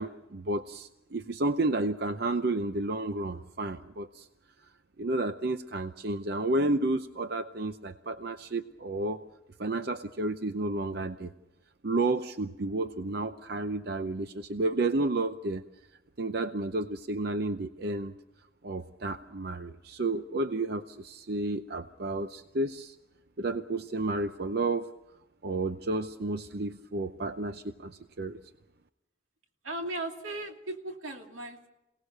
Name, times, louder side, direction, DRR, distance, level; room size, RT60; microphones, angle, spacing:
voice 1, 0.0-4.3 5.0-9.2 9.6-11.3 11.8-15.6 16.2-18.1 18.6-22.9 23.4-24.9 25.4-28.4, right 2 dB, 55° right, 10 dB, 0.7 m, -31 dB
voice 2, 29.6-31.7, right 2 dB, 90° right, 3 dB, 2.7 m, -37 dB
27.5 x 18.5 x 6.6 m, 0.96 s
head